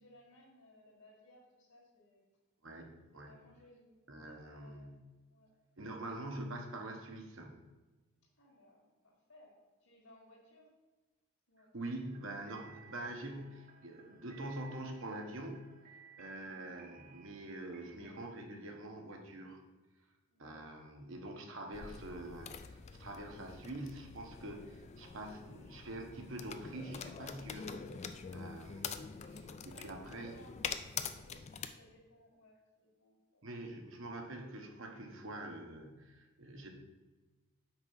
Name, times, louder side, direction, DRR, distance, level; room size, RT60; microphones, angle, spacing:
voice 1, 0.0-2.2 3.1-5.0 5.3-5.5 8.4-10.7 11.5-12.0 20.3-20.6 29.4-33.5, left 1 dB, 70° left, -4 dB, 1.9 m, -62 dB
voice 2, 2.6-3.3 4.1-5.0 5.8-7.6 11.7-15.7 16.2-19.6 20.4-30.3 33.4-36.7, right 1 dB, 60° right, 3 dB, 1.0 m, -45 dB
sound 1, 12.0-18.2, right 6 dB, 40° right, 0.7 m, -60 dB
sound 2, 21.7-31.7, left 6 dB, 30° left, 0.3 m, -45 dB
6.0 x 4.5 x 5.5 m, 1.2 s
head